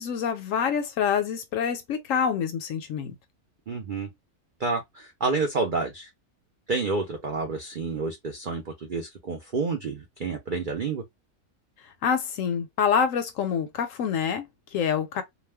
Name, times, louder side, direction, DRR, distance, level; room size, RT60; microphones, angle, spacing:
voice 1, 0.0-3.1 12.0-15.2, left 7 dB, 70° left, 0.9 m, -26 dB
voice 2, 3.7-4.1 4.6-6.1 6.7-11.0, right 4 dB, 70° right, 0.4 m, -29 dB
2.4 x 2.2 x 3.3 m
omnidirectional pair, 1.6 m